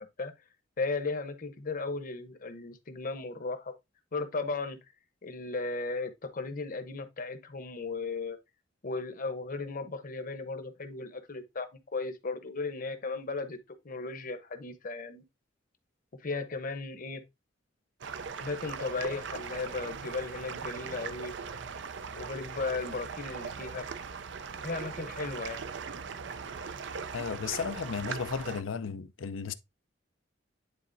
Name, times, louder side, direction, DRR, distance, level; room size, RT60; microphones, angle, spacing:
voice 1, 0.8-3.7 4.1-4.8 5.2-8.4 8.8-13.6 13.8-15.2 16.2-17.2 18.4-21.3 22.1-23.8 24.6-25.6, left 3 dB, 45° left, 0.9 m, -36 dB
sound 1, 18.0-28.6, right 6 dB, 65° right, 0.5 m, -40 dB
voice 2, 27.1-29.5, left 6 dB, 85° left, 0.6 m, -34 dB
9.9 x 4.1 x 2.6 m
head